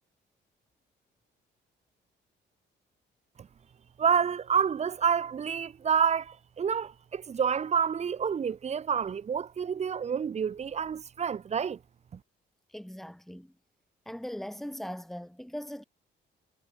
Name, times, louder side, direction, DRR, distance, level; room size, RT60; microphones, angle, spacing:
voice 1, 4.0-11.8 12.1-12.2, right 7 dB, 35° right, 0.5 m, -28 dB
voice 2, 12.7-13.5 14.1-15.8, equal, ahead, 2.2 m, -40 dB
cardioid pair, 90°, 20 cm